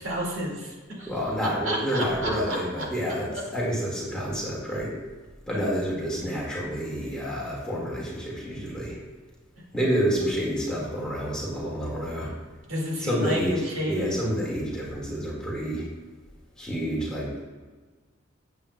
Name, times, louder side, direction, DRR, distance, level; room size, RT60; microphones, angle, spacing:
voice 1, 0.0-1.1 1.6-2.9 3.3-3.4 12.7-14.2, equal, 75° right, -2 dB, 1.9 m, -31 dB
voice 2, 1.1-3.3 3.5-4.9 5.5-9.0 9.7-12.3 13.0-13.6 13.9-15.9 16.6-17.4, equal, 5° left, -5 dB, 1.7 m, -28 dB
8.6 x 7.7 x 2.2 m, 1.3 s
head